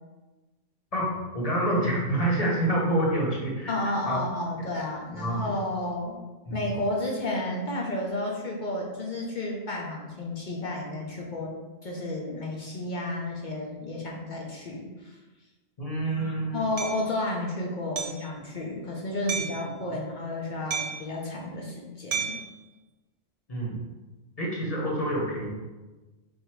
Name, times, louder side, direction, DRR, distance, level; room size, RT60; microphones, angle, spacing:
voice 1, 0.9-3.7 4.0-4.2 4.6-4.7 5.1-5.5 6.5-6.7 15.8-16.7 19.3-19.5 23.5-23.8 24.4-25.5, right 1 dB, 30° left, -4 dB, 1.0 m, -27 dB
voice 2, 3.7-6.2 6.5-11.5 11.8-15.2 16.0-22.4, left 1 dB, 50° left, -2 dB, 0.6 m, -32 dB
Hammer, 16.8-17.0 18.0-18.3 19.3-19.6 20.7-21.1 22.1-22.5, right 6 dB, 85° right, 1.1 m, -31 dB
3.9 x 2.6 x 4.5 m, 1.2 s
omnidirectional pair, 1.4 m